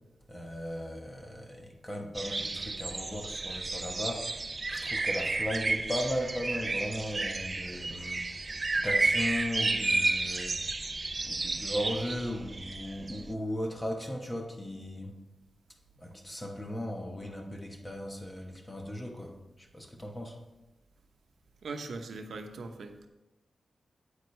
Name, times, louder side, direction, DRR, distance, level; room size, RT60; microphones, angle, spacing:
voice 1, 0.3-4.4 4.7-8.2 8.8-10.6 11.2-15.1 16.0-20.4, equal, 15° left, 2 dB, 1.2 m, -37 dB
sound 1, 2.2-13.3, right 3 dB, 30° right, 0.4 m, -32 dB
voice 2, 21.6-23.1, right 3 dB, 80° right, 5 dB, 0.8 m, -40 dB
9.1 x 8.6 x 3.2 m, 1.0 s
wide cardioid pair, 145°, 0 cm